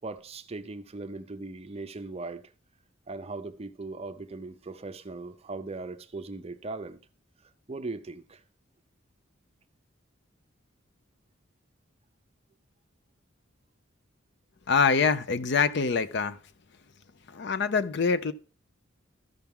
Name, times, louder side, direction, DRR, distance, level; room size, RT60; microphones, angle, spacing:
voice 1, 0.0-2.5 3.1-7.0 7.4-8.4, right 3 dB, 30° right, 0.5 m, -39 dB
voice 2, 14.7-16.4 17.3-18.3, left 5 dB, 60° left, 0.5 m, -25 dB
13.5 x 5.9 x 3.5 m
head